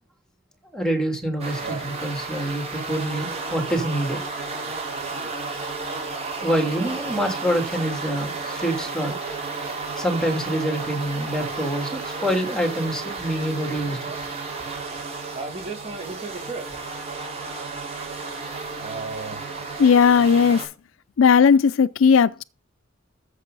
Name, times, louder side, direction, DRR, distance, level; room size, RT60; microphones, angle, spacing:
voice 1, 0.7-4.2 6.0-6.1 6.4-9.2 10.0-14.0 17.5-17.6, right 1 dB, 5° left, 2.9 m, -26 dB
sound 1, 1.4-20.6, right 4 dB, 35° right, 5.3 m, -32 dB
voice 2, 19.8-20.7 21.2-22.4, left 6 dB, 85° left, 0.4 m, -16 dB
13.5 x 6.8 x 4.0 m
head